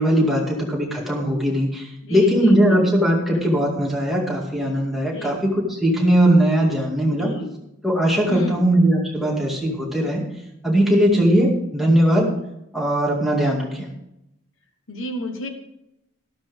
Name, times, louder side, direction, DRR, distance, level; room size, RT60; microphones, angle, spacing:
voice 1, 0.0-7.3 7.8-10.2 10.6-12.3 12.7-13.9, equal, ahead, -3 dB, 2.2 m, -19 dB
voice 2, 2.0-2.9 5.0-5.4 7.1-7.6 8.3-8.7 14.9-15.5, left 1 dB, 60° left, 5 dB, 1.4 m, -31 dB
13.0 x 12.5 x 3.5 m, 0.83 s
head